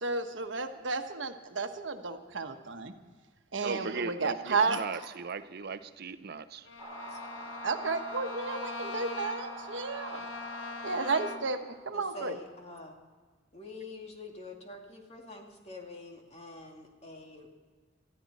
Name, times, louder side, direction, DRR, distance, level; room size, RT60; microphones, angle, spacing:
voice 1, 0.0-2.9 3.5-4.8 7.6-10.2 10.8-12.4, right 4 dB, 70° right, 1.2 m, -32 dB
voice 2, 3.6-6.7 7.4-7.5, right 4 dB, 55° right, 0.7 m, -38 dB
Bowed string instrument, 6.6-11.6, left 4 dB, 70° left, 0.9 m, -42 dB
sound 1, 6.8-11.8, right 2 dB, 15° right, 4.1 m, -45 dB
voice 3, 11.9-12.9 13.5-17.5, left 3 dB, 35° left, 2.4 m, -46 dB
19.5 x 14.0 x 4.2 m
head